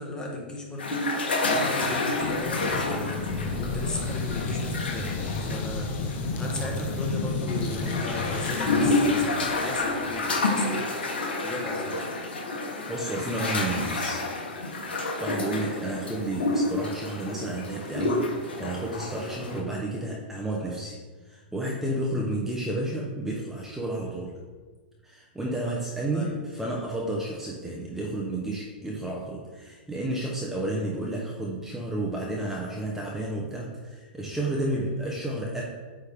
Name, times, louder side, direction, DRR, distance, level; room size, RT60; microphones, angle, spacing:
voice 1, 0.0-3.3 3.6-12.0 16.1-16.2 26.1-26.4, left 2 dB, 15° left, 0 dB, 1.2 m, -37 dB
sound 1, 0.8-19.6, left 2 dB, 85° left, 1.3 m, -29 dB
sound 2, 2.2-10.2, left 3 dB, 35° left, 0.8 m, -32 dB
voice 2, 12.9-14.3 15.2-21.0 21.2-24.4 25.0-35.6, right 1 dB, 5° right, -3 dB, 0.8 m, -31 dB
8.9 x 3.5 x 3.5 m, 1.4 s
hypercardioid pair, 120°, 5 cm